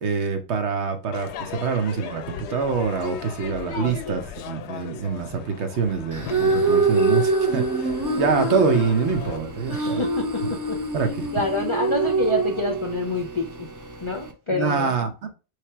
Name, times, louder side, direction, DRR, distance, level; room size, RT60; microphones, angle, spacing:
voice 1, 0.0-10.0 10.4-10.5 10.9-11.3 14.5-15.3, right 5 dB, 75° right, 1.1 m, -25 dB
Crowd / Fireworks, 1.1-9.4, left 9 dB, 75° left, 0.8 m, -37 dB
voice 2, 3.7-4.2 9.7-10.4 10.7-10.8 11.3-13.7 14.0-14.9, left 2 dB, 35° left, 0.5 m, -27 dB
sound 1, 6.1-14.3, right 3 dB, 25° right, 0.4 m, -25 dB
3.3 x 3.3 x 4.4 m
omnidirectional pair, 1.2 m